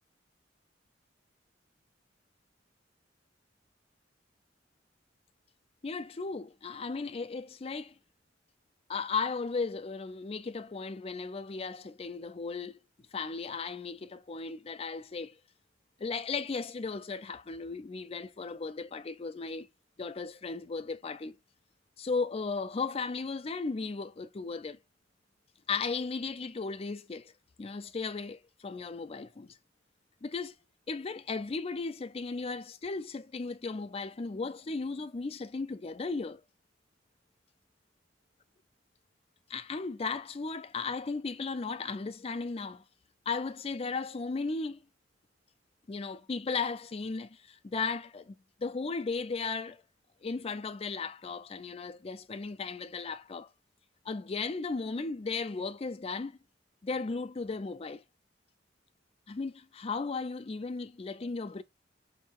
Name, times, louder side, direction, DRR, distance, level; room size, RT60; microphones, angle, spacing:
voice 1, 5.8-7.9 8.9-12.8 13.1-15.4 16.0-19.7 20.0-21.4 22.0-24.8 25.7-27.3 27.6-29.6 30.2-30.5 30.9-36.4 39.5-42.8 43.3-44.8 45.9-48.3 48.6-49.8 50.2-53.5 54.1-56.4 56.8-58.0 59.3-61.6, left 4 dB, 30° left, 0.4 m, -36 dB
5.4 x 2.7 x 3.0 m
head